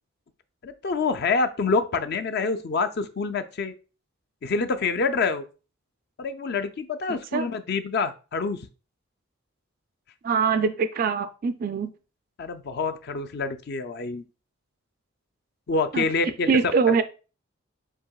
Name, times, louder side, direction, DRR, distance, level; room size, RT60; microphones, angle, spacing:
voice 1, 0.6-3.7 4.4-5.4 6.2-8.7 12.4-14.2 15.7-16.7, left 4 dB, 55° left, 0.5 m, -26 dB
voice 2, 10.2-11.9 15.9-16.1 16.5-17.0, right 5 dB, 45° right, 0.3 m, -23 dB
7.2 x 2.8 x 2.3 m
head